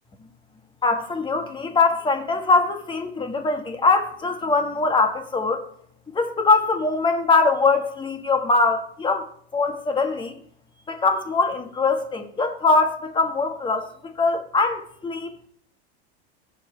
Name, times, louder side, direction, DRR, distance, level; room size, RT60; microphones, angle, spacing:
voice 1, 0.8-5.7 6.1-9.3 9.5-10.4 10.9-15.5, left 3 dB, 15° left, 1.4 m, -22 dB
21.5 x 7.3 x 3.2 m
supercardioid pair, 120°, 33 cm